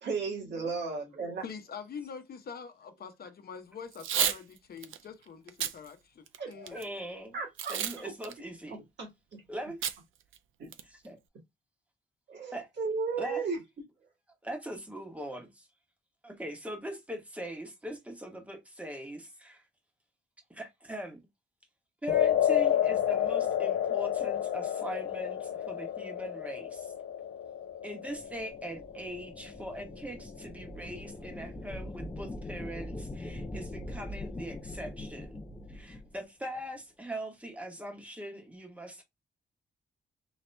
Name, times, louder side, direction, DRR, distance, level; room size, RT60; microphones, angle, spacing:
voice 1, 0.0-1.4 6.4-6.8 7.3-7.8 9.0-9.1 10.6-10.7 12.3-13.6, right 4 dB, 60° right, 2.0 m, -34 dB
voice 2, 1.4-6.8, left 6 dB, 50° left, 0.8 m, -44 dB
Packing tape duct tape / Tearing, 3.9-4.4 4.8-5.0 5.5-5.7 6.3-6.8 7.6-8.0 8.2-8.3 9.8-10.0 10.3-10.4 10.7-11.1, right 9 dB, 80° right, 0.6 m, -30 dB
voice 3, 6.7-7.4 7.7-8.8 9.5-9.8 10.8-11.1 12.5-12.7 13.2-13.4 14.4-15.7 16.2-19.6 20.5-21.2 22.0-26.9 27.8-35.4 35.7-39.0, equal, 5° right, 1.2 m, -41 dB
sound 1, 22.1-30.4, left 10 dB, 90° left, 0.7 m, -30 dB
sound 2, 28.1-36.2, left 1 dB, 15° left, 0.5 m, -42 dB
4.0 x 2.9 x 3.3 m
wide cardioid pair, 150°, 20 cm